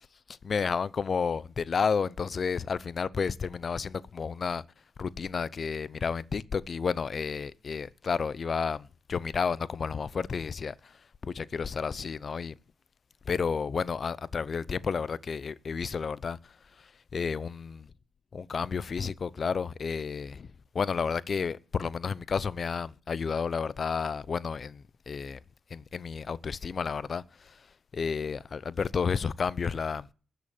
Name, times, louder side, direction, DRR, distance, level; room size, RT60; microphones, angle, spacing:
voice 1, 0.3-4.6 5.0-12.5 13.3-17.8 18.3-25.4 25.7-30.1, left 5 dB, 50° left, 0.7 m, -31 dB
13.0 x 8.2 x 7.2 m
cardioid pair, 70°, 0 cm